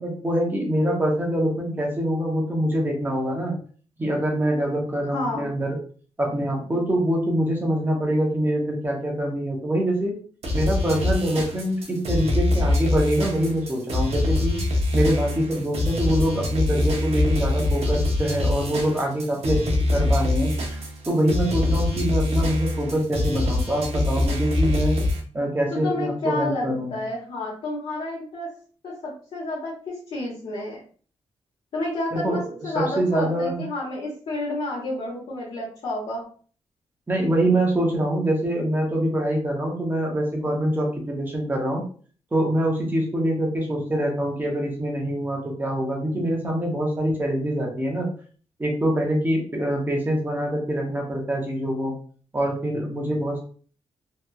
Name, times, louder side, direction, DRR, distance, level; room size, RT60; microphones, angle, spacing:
voice 1, 0.0-3.5 4.0-5.8 6.2-10.1 10.5-14.6 14.9-19.6 19.9-20.8 21.1-25.0 25.3-26.9 32.1-32.4 32.7-33.6 37.1-41.8 42.3-48.1 48.6-51.9 52.3-53.4, right 1 dB, 15° right, 0 dB, 0.8 m, -24 dB
voice 2, 5.1-5.4 25.7-28.5 28.8-30.8 31.7-36.2, left 2 dB, 65° left, -7 dB, 1.0 m, -30 dB
sound 1, 10.4-25.2, left 2 dB, 65° right, 0.7 m, -24 dB
2.9 x 2.3 x 2.3 m, 0.43 s
wide cardioid pair, 135°, 11 cm